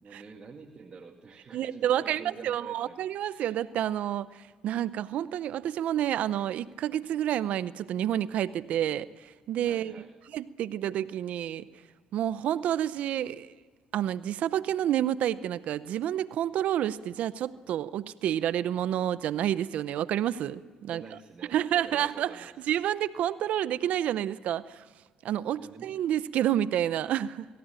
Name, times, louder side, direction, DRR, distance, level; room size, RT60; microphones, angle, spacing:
voice 1, 0.0-3.5 9.7-10.2 20.9-22.5 25.6-25.9, right 4 dB, 40° right, 1 dB, 2.2 m, -48 dB
voice 2, 1.5-10.0 10.3-11.6 12.1-13.5 13.9-21.0 21.5-24.8 25.2-27.5, right 11 dB, 70° right, 15 dB, 0.7 m, -29 dB
22.5 x 15.5 x 9.0 m, 1.5 s
supercardioid pair, 80°, 2 cm